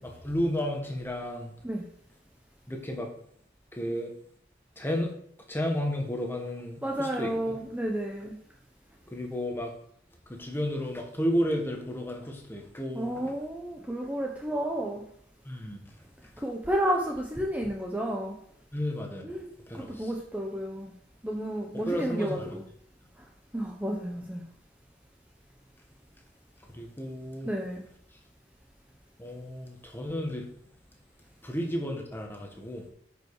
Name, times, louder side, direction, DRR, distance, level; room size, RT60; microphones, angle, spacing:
voice 1, 0.0-1.5 2.7-3.1 3.7-4.1 4.8-5.1 5.5-7.5 9.1-9.7 10.3-13.2 15.4-15.8 18.7-19.2 19.7-20.1 21.7-22.5 26.7-27.5 29.2-30.5 31.4-32.8, equal, 10° left, 1 dB, 1.5 m, -32 dB
voice 2, 6.8-8.4 12.9-15.0 16.4-18.4 19.2-19.4 19.7-20.9 21.2-22.6 23.5-24.4 27.4-27.8, right 1 dB, 10° right, 0 dB, 0.9 m, -31 dB
9.1 x 5.4 x 4.9 m, 0.67 s
head